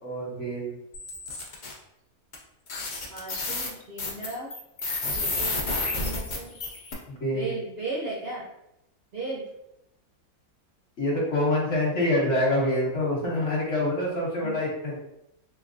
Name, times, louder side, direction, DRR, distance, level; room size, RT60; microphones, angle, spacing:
voice 1, 0.0-0.7 7.1-7.6 11.0-15.0, left 1 dB, 55° left, -4 dB, 1.1 m, -26 dB
sound 1, 0.9-1.7 2.3-2.4 2.7-6.9, left 2 dB, 80° left, 0.4 m, -30 dB
voice 2, 3.1-4.5 5.2-6.6 7.3-8.5 9.1-9.5 14.4-14.6, right 3 dB, 55° right, -5 dB, 0.7 m, -36 dB
3.4 x 3.1 x 2.5 m, 0.84 s
omnidirectional pair, 1.7 m